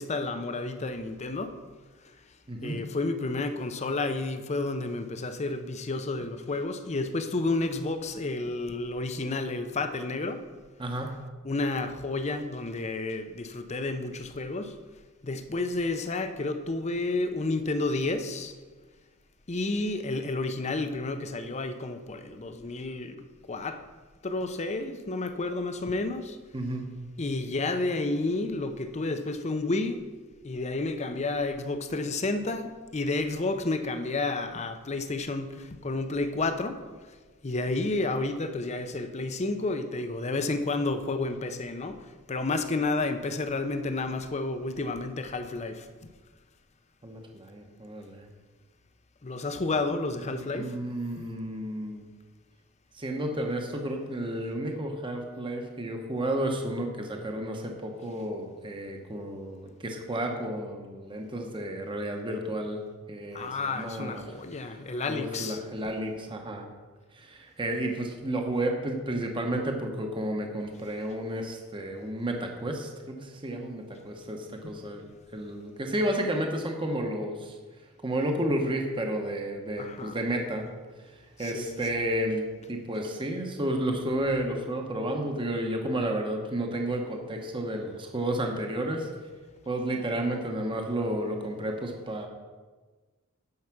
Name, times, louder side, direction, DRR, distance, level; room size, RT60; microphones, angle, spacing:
voice 1, 0.0-1.5 2.6-10.4 11.4-14.7 15.2-18.5 19.5-23.2 23.5-23.8 24.2-26.4 27.2-30.0 30.4-36.8 37.4-42.0 42.3-45.9 49.2-50.7 63.3-65.6 79.8-80.2 81.4-82.0, left 2 dB, 30° left, 9 dB, 0.6 m, -31 dB
voice 2, 2.5-2.8 10.8-11.1 26.5-26.8 47.0-48.3 50.3-52.0 52.9-62.8 63.1-64.2 64.7-64.8 65.1-66.7 67.1-77.6 78.0-80.7 81.4-89.1 89.7-92.3, right 1 dB, 25° right, 3 dB, 0.9 m, -32 dB
9.5 x 5.7 x 5.9 m, 1.4 s
head